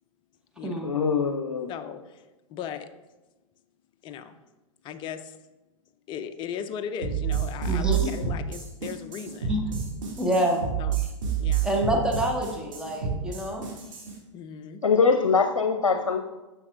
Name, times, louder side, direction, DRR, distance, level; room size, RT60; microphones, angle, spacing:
voice 1, 0.8-1.7 14.8-16.2, left 5 dB, 90° left, 6 dB, 0.6 m, -22 dB
voice 2, 1.7-2.9 4.0-4.4 4.8-5.4 6.1-9.6 10.8-11.1 11.4-11.7 14.3-14.8, left 8 dB, 30° left, 9 dB, 0.6 m, -37 dB
sound 1, 7.0-14.1, right 8 dB, 65° right, 2.5 m, -29 dB
voice 3, 7.6-8.1 9.5-9.6 10.2-10.6 11.6-13.6, right 1 dB, 5° right, 0 dB, 1.3 m, -26 dB
9.9 x 6.5 x 2.6 m, 1.1 s
hypercardioid pair, 110°, 17 cm